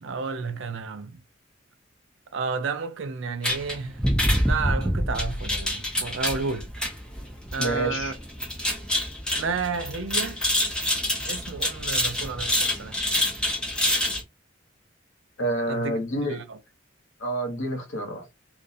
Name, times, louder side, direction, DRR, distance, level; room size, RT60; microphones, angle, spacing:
voice 1, 0.0-1.2 2.3-4.0 4.4-6.7 7.5-8.1 9.3-10.4 11.3-13.0 15.7-15.9 16.3-16.4, right 4 dB, 70° right, 0.5 m, -31 dB
sound 1, 3.4-14.2, left 1 dB, 5° left, 0.5 m, -27 dB
voice 2, 7.6-8.2 15.4-16.5 17.2-18.3, right 1 dB, 75° left, 0.9 m, -28 dB
2.4 x 2.0 x 2.5 m
head